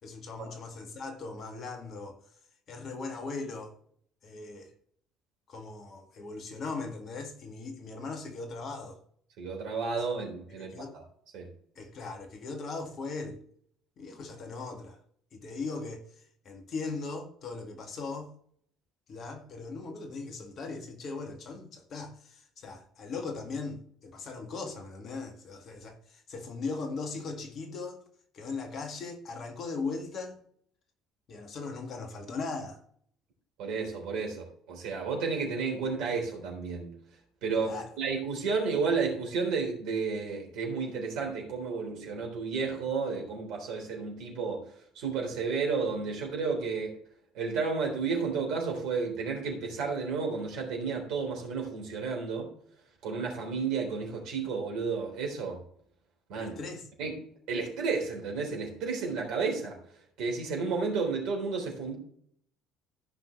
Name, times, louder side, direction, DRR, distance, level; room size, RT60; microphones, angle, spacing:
voice 1, 0.0-2.2 2.7-3.7 4.2-4.7 5.5-9.0 10.5-11.0 11.8-13.4 14.0-15.0 15.3-16.0 16.4-18.3 19.1-28.0 28.3-30.4 31.3-32.8 37.6-37.9 56.3-56.9, left 4 dB, 45° left, 2.1 m, -39 dB
voice 2, 9.4-11.0 11.3-11.5 33.6-36.9 37.4-44.6 45.0-47.0 47.3-52.5 53.0-55.6 56.3-56.5 57.0-57.2 57.5-59.8 60.2-62.0, right 5 dB, 60° right, 3.7 m, -32 dB
15.0 x 6.0 x 3.4 m
figure-of-eight pair, 55°, 0 cm